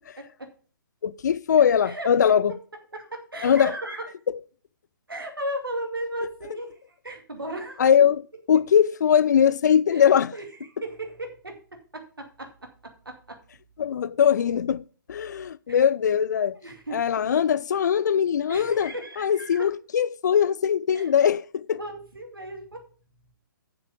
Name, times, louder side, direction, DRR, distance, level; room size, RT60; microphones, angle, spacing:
voice 1, 1.0-2.5 3.4-3.7 7.8-8.2 8.5-10.3 13.8-16.6 16.9-18.9 19.2-21.8, left 8 dB, 55° left, 0.5 m, -21 dB
voice 2, 2.9-4.1 5.1-7.8 9.9-10.1 10.3-10.5 10.8-11.6 11.9-13.4 15.7-15.8 16.6-17.0 18.5-19.7 20.9-21.1 21.8-22.8, right 1 dB, 80° right, 2.3 m, -35 dB
7.1 x 6.8 x 6.7 m
figure-of-eight pair, 125°, 12 cm